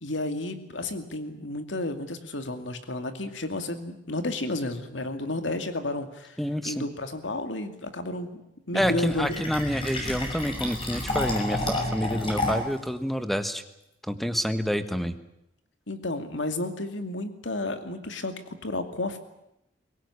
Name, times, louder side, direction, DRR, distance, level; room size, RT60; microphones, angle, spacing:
voice 1, 0.0-6.4 6.6-8.4 8.7-9.4 15.9-19.2, left 2 dB, 75° left, 8 dB, 2.4 m, -32 dB
voice 2, 6.4-6.9 8.7-13.6 14.1-15.2, equal, ahead, 11 dB, 1.4 m, -28 dB
Fill (with liquid), 8.8-12.8, left 2 dB, 30° left, 6.1 m, -30 dB
23.0 x 18.5 x 9.8 m, 0.87 s
head